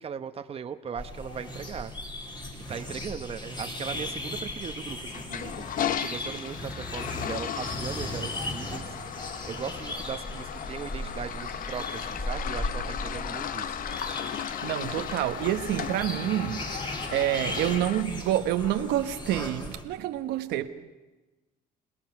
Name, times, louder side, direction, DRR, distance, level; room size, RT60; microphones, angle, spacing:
voice 1, 0.0-1.9 2.5-5.7 6.0-9.0 9.4-13.8, right 7 dB, 35° right, 1.0 m, -38 dB
sound 1, 1.0-19.8, left 1 dB, 25° left, 3.1 m, -37 dB
Toilet flush, 5.1-18.0, left 9 dB, 55° left, 1.0 m, -36 dB
sound 2, 8.0-14.3, equal, 5° left, 1.9 m, -52 dB
voice 2, 14.6-20.7, right 12 dB, 85° right, 1.2 m, -28 dB
28.0 x 18.0 x 5.9 m
cardioid pair, 110°, 17 cm